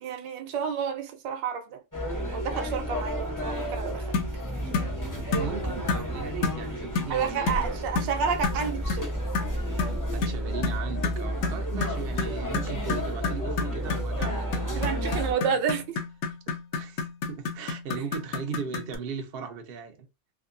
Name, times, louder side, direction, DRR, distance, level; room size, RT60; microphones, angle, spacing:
voice 1, 0.0-1.8 2.3-4.2 7.1-9.1 14.8-16.0, right 7 dB, 75° right, 1.4 m, -30 dB
sound 1, 1.9-15.3, equal, 30° left, 0.3 m, -31 dB
sound 2, 4.1-4.4 4.7-4.9 5.3-5.5 5.9-6.1 6.4-6.6 7.0-7.2 7.5-7.7 8.0-8.1 8.4-8.6 8.9-9.1 9.3-19.0, left 5 dB, 60° left, 1.0 m, -30 dB
voice 2, 5.3-7.9 8.9-9.1 9.6-15.4 16.7-20.1, right 6 dB, 55° right, 0.6 m, -38 dB
3.5 x 2.9 x 2.5 m
omnidirectional pair, 2.0 m